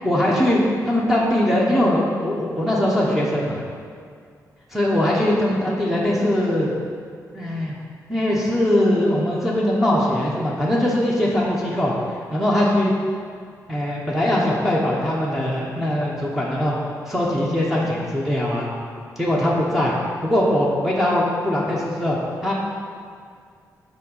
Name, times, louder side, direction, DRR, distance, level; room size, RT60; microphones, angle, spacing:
voice 1, 0.0-0.6 0.8-3.6 4.7-6.7 7.3-7.8 8.1-11.9 12.3-12.9 13.7-16.8 17.0-18.7 19.2-19.9 20.2-22.5, left 1 dB, 5° right, -5 dB, 1.0 m, -21 dB
7.4 x 5.1 x 5.5 m, 2.2 s
wide cardioid pair, 135°, 6 cm